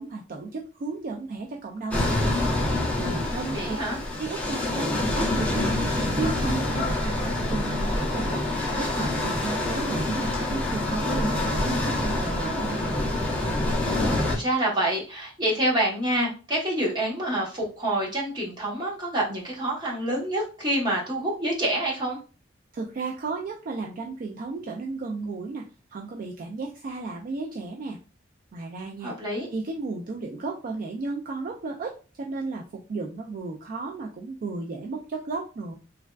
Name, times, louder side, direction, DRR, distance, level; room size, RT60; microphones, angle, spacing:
voice 1, 0.0-2.4 3.0-3.8 4.2-8.4 8.7-12.8 22.7-25.6 25.9-28.0 28.5-29.1 29.5-35.7, right 3 dB, 45° right, 1 dB, 0.3 m, -34 dB
sound 1, 1.9-14.4, left 1 dB, 5° left, 0.6 m, -26 dB
voice 2, 3.5-4.0 13.8-22.2 29.0-29.5, right 1 dB, 25° right, -3 dB, 1.0 m, -27 dB
sound 2, 5.3-10.9, left 3 dB, 60° left, 0.7 m, -42 dB
3.3 x 2.2 x 2.2 m, 0.35 s
head